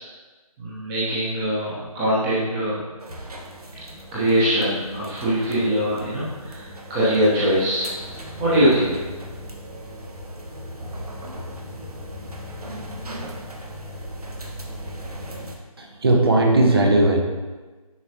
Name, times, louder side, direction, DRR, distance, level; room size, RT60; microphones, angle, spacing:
voice 1, 0.6-2.8 4.1-7.9 8.4-9.0, equal, 10° right, -10 dB, 0.8 m, -22 dB
sound 1, 3.0-15.5, equal, 80° right, 1.3 m, -37 dB
voice 2, 15.8-17.2, right 2 dB, 40° right, 1 dB, 1.0 m, -17 dB
9.8 x 4.6 x 2.8 m, 1.3 s
figure-of-eight pair, 165°, 19 cm